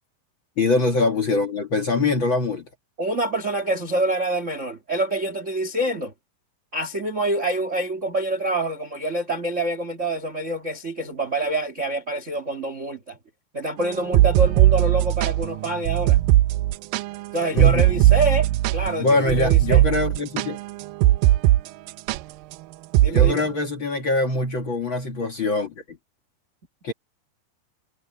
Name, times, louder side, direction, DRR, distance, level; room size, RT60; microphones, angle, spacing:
voice 1, 0.6-2.7 17.5-18.0 19.0-20.6 23.1-26.0 26.8-26.9, left 2 dB, 45° left, 1.8 m, -23 dB
voice 2, 3.0-6.1 6.7-13.2 13.5-16.2 17.3-19.8 23.0-23.5, right 1 dB, 60° right, 0.7 m, -26 dB
sound 1, 13.9-21.6 21.9-22.2 22.9-23.3, right 15 dB, 80° right, 2.1 m, -18 dB
omnidirectional pair, 4.6 m